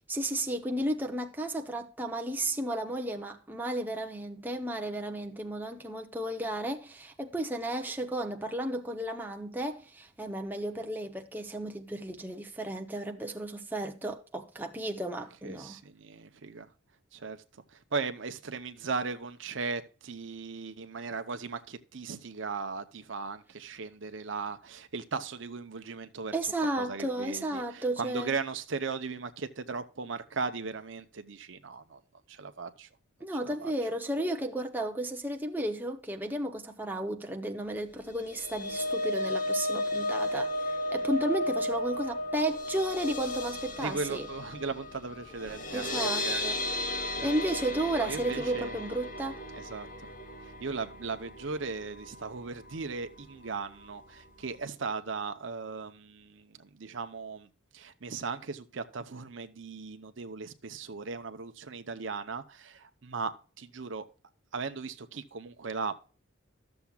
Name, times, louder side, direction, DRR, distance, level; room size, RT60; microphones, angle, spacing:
voice 1, 0.1-15.8 26.3-28.3 33.2-44.3 45.7-46.6 47.2-49.4, right 1 dB, 10° right, 0.7 m, -33 dB
voice 2, 15.4-16.7 17.1-32.0 32.3-32.9 33.4-33.7 43.8-47.3 48.0-48.8 49.5-50.1 50.4-64.1 64.5-65.9, right 4 dB, 65° right, 0.7 m, -38 dB
sound 1, 38.1-52.3 52.7-52.9 53.2-53.3, left 1 dB, 40° left, 1.1 m, -34 dB
13.0 x 7.1 x 2.3 m
head